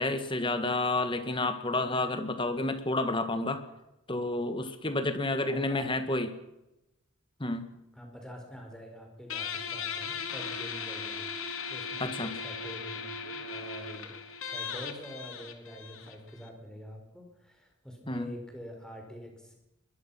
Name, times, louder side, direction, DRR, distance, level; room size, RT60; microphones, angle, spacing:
voice 1, 0.0-3.6 4.1-6.3 7.4-7.7 12.0-12.3 18.1-18.3, left 2 dB, 25° left, 9 dB, 1.8 m, -30 dB
voice 2, 5.4-5.9 7.9-14.1 14.4-19.6, equal, 5° left, 2 dB, 5.0 m, -45 dB
Guitar, 9.3-16.5, left 6 dB, 75° left, 2.8 m, -38 dB
22.0 x 21.0 x 5.9 m, 0.91 s
head